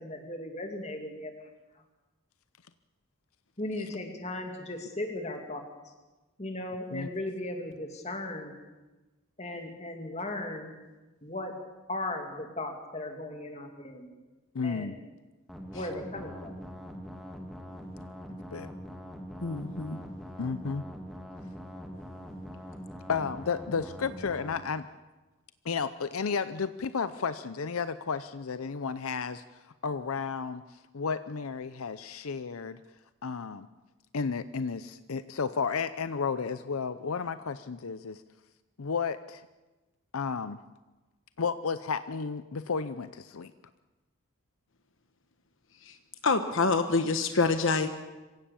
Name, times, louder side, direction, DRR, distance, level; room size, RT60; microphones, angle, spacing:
voice 1, 0.0-1.3 3.6-5.6 6.4-8.6 9.4-10.7 11.2-11.6 11.9-14.1 14.6-15.0 15.7-16.6, left 1 dB, 30° left, 4 dB, 2.5 m, -37 dB
voice 2, 14.5-15.0 18.5-18.7 20.4-20.9 23.1-24.9 25.6-29.4 29.8-30.6 30.9-32.8 33.2-33.7 34.1-38.2 38.8-39.4 40.1-40.6 41.4-43.5, left 5 dB, 85° left, 13 dB, 0.7 m, -32 dB
sound 1, 15.5-24.5, equal, ahead, 2.2 m, -43 dB
voice 3, 19.4-20.0 45.9-46.0 46.2-47.9, left 4 dB, 65° left, 8 dB, 1.1 m, -26 dB
26.0 x 16.0 x 7.2 m, 1.2 s
head